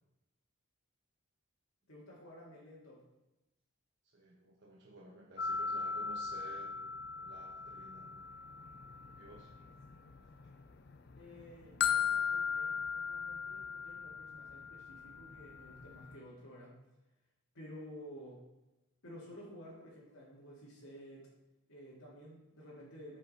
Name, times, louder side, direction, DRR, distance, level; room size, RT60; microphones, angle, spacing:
voice 1, 1.9-3.0 11.2-16.7 17.5-18.4 19.0-21.3 21.7-23.2, equal, 75° left, -7 dB, 2.1 m, -52 dB
voice 2, 4.1-6.8 7.1-8.1 9.1-9.5, right 1 dB, 55° right, -4 dB, 1.1 m, -54 dB
sound 1, 5.4-10.5 10.8-16.2, left 6 dB, 50° left, 0.5 m, -38 dB
9.9 x 5.4 x 4.2 m, 1.0 s
head